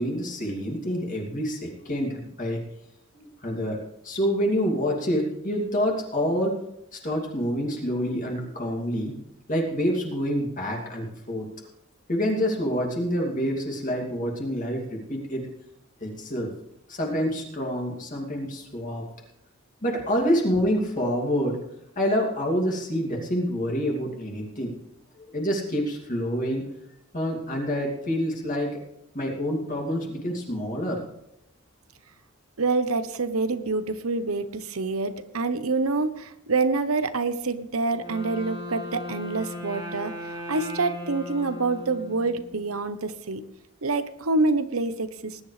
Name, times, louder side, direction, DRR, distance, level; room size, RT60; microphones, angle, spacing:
voice 1, 0.0-2.6 3.1-3.8 4.0-6.6 6.9-9.1 9.5-11.5 12.1-15.4 16.0-16.5 16.9-19.0 19.8-21.6 22.0-24.7 25.3-26.7 27.1-28.7 29.1-31.0, equal, 35° left, 0 dB, 2.6 m, -27 dB
voice 2, 32.6-40.1 40.5-43.4 43.8-45.4, right 3 dB, 85° right, 12 dB, 1.0 m, -26 dB
Wind instrument woodwind instrument, 37.9-42.7, left 1 dB, 20° right, 2.6 m, -37 dB
19.5 x 11.0 x 3.4 m, 0.82 s
head